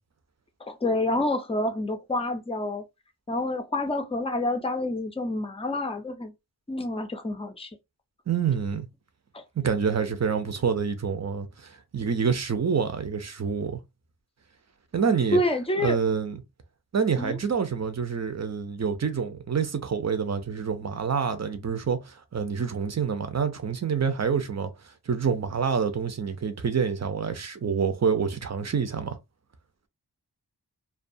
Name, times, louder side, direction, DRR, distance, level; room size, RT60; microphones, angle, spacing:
voice 1, 0.6-2.8 3.3-6.3 6.7-7.7 9.3-9.4 15.3-16.0 17.2-17.4, left 1 dB, 15° left, 0.5 m, -28 dB
voice 2, 8.3-8.9 9.6-13.8 14.9-15.4 15.8-16.4 16.9-24.7 25.1-29.2, right 6 dB, 40° right, 0.6 m, -27 dB
2.3 x 2.3 x 2.6 m
wide cardioid pair, 50°, 41 cm